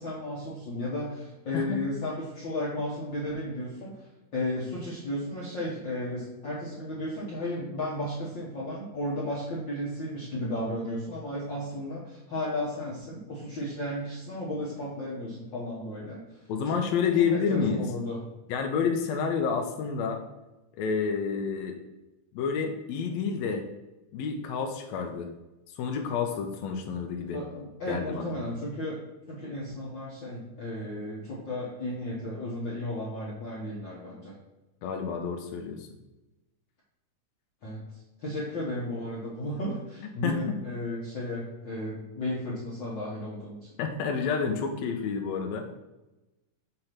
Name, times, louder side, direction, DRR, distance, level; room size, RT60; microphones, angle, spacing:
voice 1, 0.0-16.2 16.6-16.8 17.3-18.2 27.3-34.3 37.6-37.8 38.2-43.7, left 1 dB, 60° left, -6 dB, 1.3 m, -34 dB
voice 2, 16.5-17.8 18.5-20.2 20.8-21.8 22.3-23.6 24.1-25.3 25.7-27.4 27.9-28.4 34.8-35.9 40.2-40.6 43.8-45.6, left 6 dB, 80° left, 3 dB, 1.6 m, -29 dB
6.5 x 2.9 x 5.7 m, 1.0 s
omnidirectional pair, 3.6 m